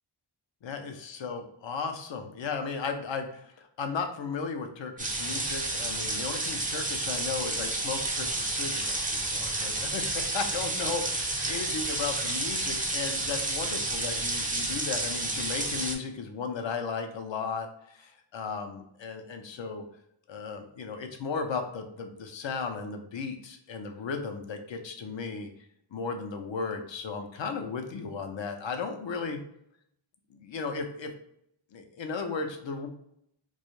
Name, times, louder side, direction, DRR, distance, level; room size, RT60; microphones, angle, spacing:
voice 1, 0.6-19.8 20.3-25.5 25.9-29.4 30.3-31.1 31.7-32.9, left 5 dB, 65° left, 5 dB, 0.6 m, -35 dB
sound 1, 5.0-16.0, right 2 dB, 20° right, 0.4 m, -31 dB
2.3 x 2.1 x 3.0 m, 0.73 s
wide cardioid pair, 60°, 49 cm